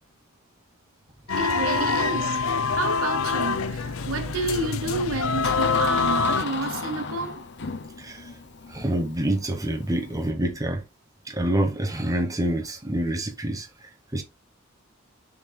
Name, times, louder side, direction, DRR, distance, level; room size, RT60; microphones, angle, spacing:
sound 1, 1.3-6.4, left 4 dB, 85° left, 0.6 m, -25 dB
voice 1, 1.4-2.4 2.7-7.5, right 3 dB, 80° right, 1.0 m, -30 dB
Door, 2.6-10.3, left 4 dB, 55° left, 0.9 m, -37 dB
voice 2, 8.0-8.4 8.7-10.8 11.2-14.2, right 1 dB, 15° right, 1.2 m, -27 dB
7.1 x 3.9 x 3.4 m
head